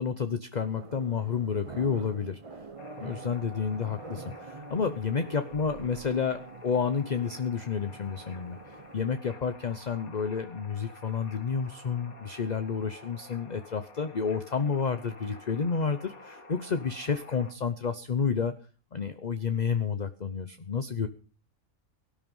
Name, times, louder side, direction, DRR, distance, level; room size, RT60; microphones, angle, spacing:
voice 1, 0.0-2.4 3.0-8.6 8.9-18.6 18.9-21.1, left 6 dB, 35° left, 10 dB, 0.8 m, -30 dB
sound 1, 0.5-9.1, right 3 dB, 25° right, 0.9 m, -46 dB
sound 2, 2.8-17.5, left 2 dB, 80° left, 2.5 m, -50 dB
18.0 x 10.5 x 5.5 m, 0.37 s
omnidirectional pair, 1.5 m